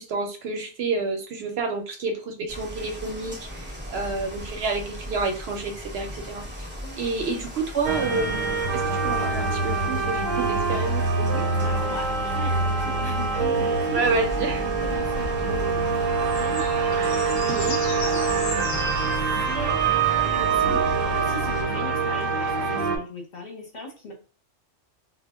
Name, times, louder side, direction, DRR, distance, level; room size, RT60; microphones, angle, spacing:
voice 1, 0.0-6.7 7.0-11.0 13.9-14.6 17.4-17.8 20.5-20.8, right 3 dB, 65° right, 4 dB, 0.7 m, -29 dB
sound 1, 2.5-21.6, equal, 15° right, 0.5 m, -38 dB
sound 2, 7.9-23.0, right 4 dB, 85° right, 1.0 m, -25 dB
voice 2, 11.2-14.0 14.6-24.1, left 1 dB, 45° left, 0 dB, 0.7 m, -39 dB
sound 3, 14.0-19.2, left 3 dB, 70° left, 0.4 m, -37 dB
2.1 x 2.0 x 3.4 m, 0.36 s
omnidirectional pair, 1.3 m